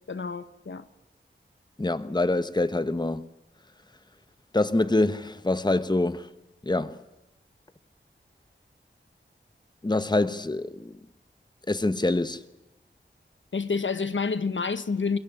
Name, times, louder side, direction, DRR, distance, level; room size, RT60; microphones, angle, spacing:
voice 1, 0.1-0.8 13.5-15.2, left 4 dB, 70° left, 1.1 m, -28 dB
voice 2, 1.8-3.3 4.5-6.3 6.6-7.0 9.8-11.1 11.7-12.4, left 2 dB, 20° left, 1.1 m, -25 dB
22.5 x 22.5 x 9.9 m
wide cardioid pair, 60°, 20 cm